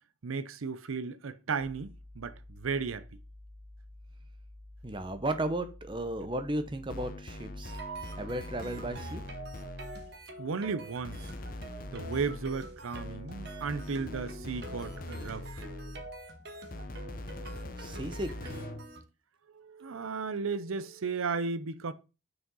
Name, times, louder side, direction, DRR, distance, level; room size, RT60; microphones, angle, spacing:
voice 1, 0.2-3.1 10.4-11.3 11.9-15.7 17.6-17.7 19.5-21.9, right 5 dB, 85° right, 0.6 m, -35 dB
sound 1, 1.6-8.4, left 1 dB, 5° right, 2.6 m, -51 dB
voice 2, 4.8-7.8 8.2-9.2 17.8-18.7, right 1 dB, 25° right, 0.8 m, -35 dB
sound 2, 6.9-10.2 11.0-16.2 16.7-18.9, left 1 dB, 45° left, 0.9 m, -42 dB
sound 3, 7.6-19.0, right 3 dB, 55° right, 1.5 m, -46 dB
6.4 x 4.9 x 5.4 m
head